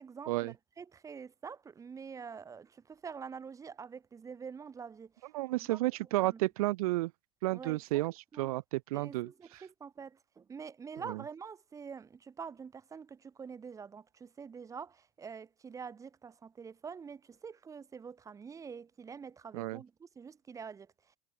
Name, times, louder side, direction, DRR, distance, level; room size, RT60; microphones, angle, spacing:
voice 1, 0.0-5.3 5.5-5.8 6.2-6.4 7.5-8.0 8.3-8.5 8.9-21.2, right 6 dB, 15° right, 4.1 m, -46 dB
voice 2, 5.3-7.1 7.4-9.3 11.1-11.2 19.5-19.8, right 19 dB, 85° right, 1.0 m, -32 dB
supercardioid pair, 155°, 18 cm